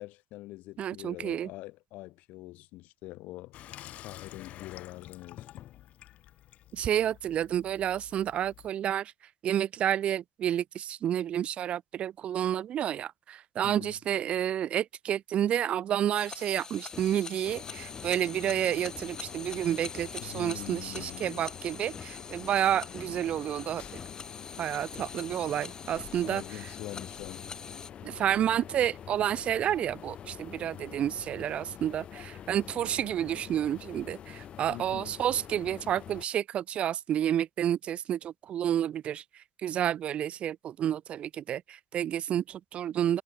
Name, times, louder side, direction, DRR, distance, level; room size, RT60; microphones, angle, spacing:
voice 1, 0.0-3.6 4.0-5.7 13.6-13.9 20.2-21.4 26.2-27.5 34.7-35.2, left 19 dB, 85° left, 1.9 m, -44 dB
voice 2, 0.8-1.5 6.7-9.1 9.4-23.8 24.6-26.4 28.0-43.2, right 10 dB, 50° right, 0.7 m, -30 dB
Water tap faucet / Sink (filling or washing), 3.5-8.7, left 13 dB, 60° left, 1.6 m, -49 dB
sound 1, 16.2-27.9, left 5 dB, 25° left, 0.9 m, -44 dB
sound 2, 17.4-36.3, left 9 dB, 45° left, 1.1 m, -46 dB
cardioid pair, 135°, 3 cm